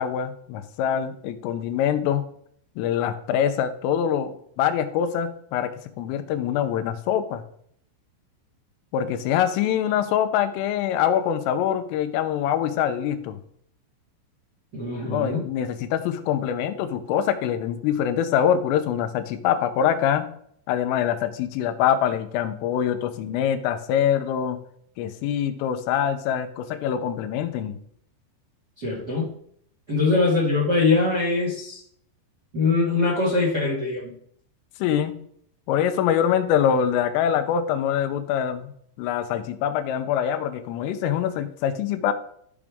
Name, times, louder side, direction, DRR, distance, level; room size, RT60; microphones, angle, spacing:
voice 1, 0.0-2.3 2.8-5.7 6.0-7.4 8.9-13.4 15.1-20.3 20.7-24.6 25.0-27.8 34.8-35.1 35.7-38.7 39.0-42.1, left 9 dB, 90° left, 9 dB, 3.4 m, -24 dB
voice 2, 14.7-15.4 28.8-29.3 29.9-31.8 32.5-34.1, left 3 dB, 45° right, -3 dB, 1.3 m, -22 dB
13.5 x 6.1 x 3.6 m, 0.66 s
omnidirectional pair, 5.7 m